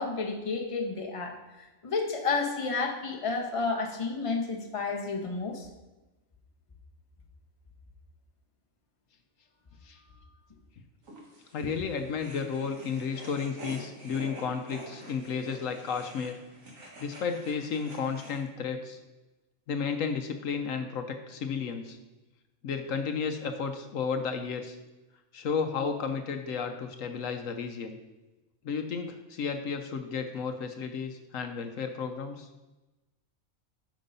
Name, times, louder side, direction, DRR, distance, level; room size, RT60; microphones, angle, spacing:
voice 1, 0.0-5.7, left 4 dB, 25° left, 2 dB, 1.0 m, -31 dB
sound 1, 11.0-18.4, right 1 dB, 70° right, 2.0 m, -47 dB
voice 2, 11.5-16.4 17.0-19.0 19.7-22.0 22.6-24.8 25.3-28.0 28.6-32.5, left 6 dB, 70° left, 6 dB, 1.1 m, -33 dB
9.0 x 5.3 x 5.5 m, 1.1 s
omnidirectional pair, 1.4 m